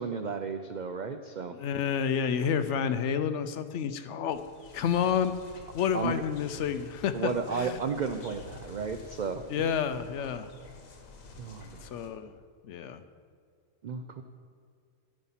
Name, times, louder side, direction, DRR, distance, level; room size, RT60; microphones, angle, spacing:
voice 1, 0.0-1.6 5.9-6.2 7.1-9.8 11.4-12.0 13.8-14.2, right 5 dB, 80° right, 8 dB, 0.4 m, -33 dB
voice 2, 1.5-4.4 4.7-5.3 5.7-7.8 9.5-10.5 11.8-12.3 12.6-13.0, left 7 dB, 70° left, 11 dB, 0.8 m, -29 dB
sound 1, 4.3-12.1, left 3 dB, 85° left, 1.5 m, -49 dB
14.0 x 5.4 x 5.6 m, 2.2 s
omnidirectional pair, 1.4 m